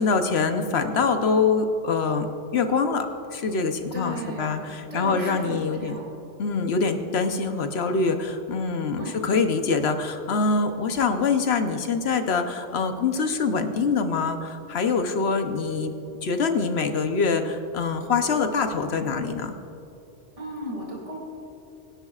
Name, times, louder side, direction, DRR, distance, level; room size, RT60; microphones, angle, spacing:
voice 1, 0.0-2.3 2.5-6.0 6.4-15.9 16.2-19.5, left 4 dB, 65° left, 7 dB, 1.0 m, -24 dB
voice 2, 3.9-6.0 9.0-9.1 20.4-21.2, equal, 30° right, -3 dB, 2.5 m, -35 dB
22.5 x 10.5 x 2.4 m, 2.8 s
omnidirectional pair, 1.2 m